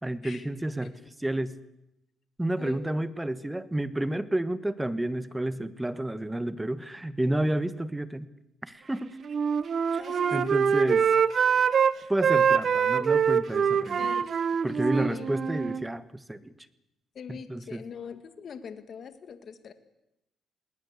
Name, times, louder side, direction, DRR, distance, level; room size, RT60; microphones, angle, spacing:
voice 1, 0.0-1.5 2.4-8.3 8.6-9.2 9.9-10.0 10.3-11.0 12.1-14.1 14.6-16.5 17.3-17.8, right 1 dB, 10° right, 15 dB, 1.3 m, -30 dB
Wind instrument woodwind instrument, 9.2-11.9 12.2-15.8, right 7 dB, 50° right, 0.9 m, -24 dB
voice 2, 10.0-10.5 10.8-11.0 11.4-11.6 13.0-13.1 14.0-15.3 17.2-19.7, left 6 dB, 55° left, 10 dB, 2.0 m, -42 dB
20.0 x 19.5 x 8.2 m, 0.88 s
cardioid pair, 90°, 0 cm